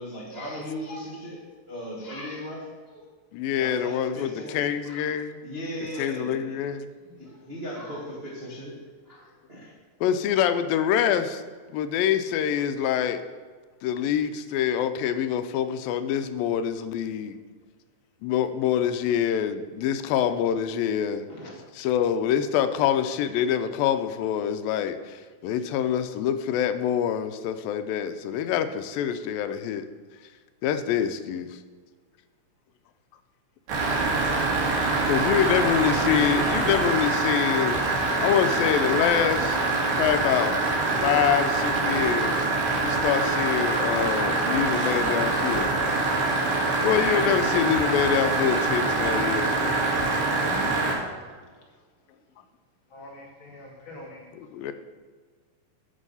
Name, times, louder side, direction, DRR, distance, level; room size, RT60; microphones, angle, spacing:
voice 1, 0.0-1.4 1.7-3.0 3.6-5.0 5.4-6.6 7.2-8.7 9.0-9.7, equal, 35° right, -4 dB, 1.0 m, -37 dB
voice 2, 3.3-5.4 6.0-6.9 10.0-11.4 11.7-13.2 13.8-17.4 18.2-21.3 21.7-29.9 30.6-31.6 35.1-37.8 38.2-39.6 40.0-40.6 41.0-42.4 42.8-45.8 46.8-49.9 50.1-50.3 54.3-54.7, left 9 dB, 85° left, 10 dB, 2.4 m, -25 dB
voice 3, 21.3-21.6 50.1-50.8 52.9-54.3, left 1 dB, 40° left, -2 dB, 2.4 m, -43 dB
sound 1, 33.7-50.9, right 3 dB, 85° right, 4.2 m, -24 dB
sound 2, 37.7-46.1, left 3 dB, 60° left, 5.2 m, -42 dB
11.5 x 7.3 x 5.5 m, 1.5 s
omnidirectional pair, 4.1 m